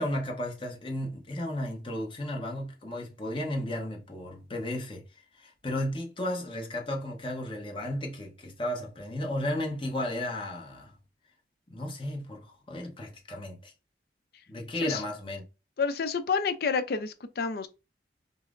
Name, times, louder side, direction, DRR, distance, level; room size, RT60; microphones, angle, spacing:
voice 1, 0.0-5.0 5.4-10.9 11.7-13.7 14.5-15.4, left 1 dB, 30° left, 0.8 m, -34 dB
voice 2, 15.8-17.7, left 5 dB, 55° left, 0.5 m, -29 dB
5.2 x 2.0 x 2.5 m
head